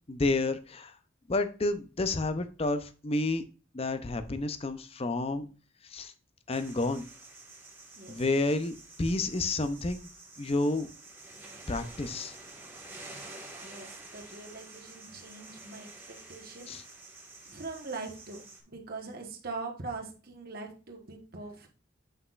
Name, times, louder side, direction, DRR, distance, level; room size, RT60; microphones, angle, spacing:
voice 1, 0.1-0.9 1.3-3.4 3.7-5.5 5.9-6.1 6.5-7.1 8.1-10.1 10.4-10.9 11.7-12.3 16.7-16.8, left 2 dB, 30° left, 10 dB, 0.6 m, -30 dB
sound 1, 6.5-18.6, right 2 dB, 10° right, 1.5 m, -49 dB
voice 2, 13.6-16.8 17.4-21.7, right 3 dB, 50° right, 2 dB, 1.3 m, -42 dB
7.9 x 5.9 x 2.4 m, 0.34 s
head